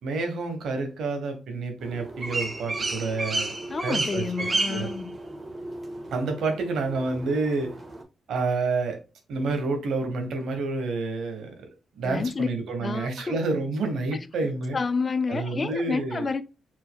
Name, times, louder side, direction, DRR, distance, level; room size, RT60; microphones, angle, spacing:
voice 1, 0.0-3.5 3.8-4.9 6.1-7.8 8.3-9.0 9.3-11.7 12.0-14.8 15.3-16.3, right 3 dB, 80° right, 1.2 m, -29 dB
sound 1, 1.8-8.0, right 2 dB, 35° right, 1.1 m, -32 dB
voice 2, 3.7-5.1 12.0-12.5 12.8-13.4 14.1-14.2 14.7-16.4, left 4 dB, 35° left, 0.4 m, -29 dB
4.6 x 4.0 x 2.3 m
cardioid pair, 90°, 0 cm